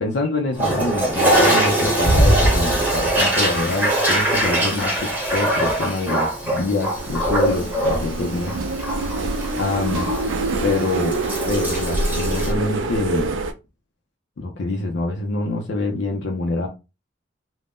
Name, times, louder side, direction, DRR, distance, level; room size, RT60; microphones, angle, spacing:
voice 1, 0.0-8.5 9.5-10.1 10.6-11.2 11.5-13.3 14.4-16.7, left 2 dB, 65° left, 0.5 m, -25 dB
Toilet flush, 0.5-12.5, right 1 dB, 10° right, 0.9 m, -22 dB
sound 1, 7.0-13.5, right 2 dB, 75° right, 0.4 m, -26 dB
2.5 x 2.1 x 3.4 m
head